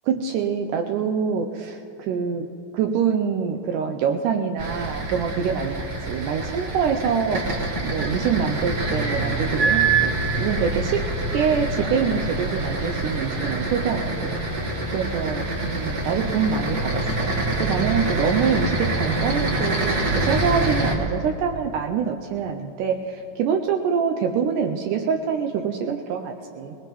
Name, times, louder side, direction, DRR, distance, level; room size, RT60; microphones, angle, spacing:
voice 1, 0.1-2.5 2.7-7.5 7.8-10.1 10.4-11.1 11.3-14.4 14.9-17.3 17.6-26.8, right 6 dB, 80° right, 4 dB, 2.0 m, -25 dB
sound 1, 4.6-20.9, right 2 dB, 50° right, 1.2 m, -25 dB
20.5 x 18.5 x 3.0 m, 2.8 s
omnidirectional pair, 4.0 m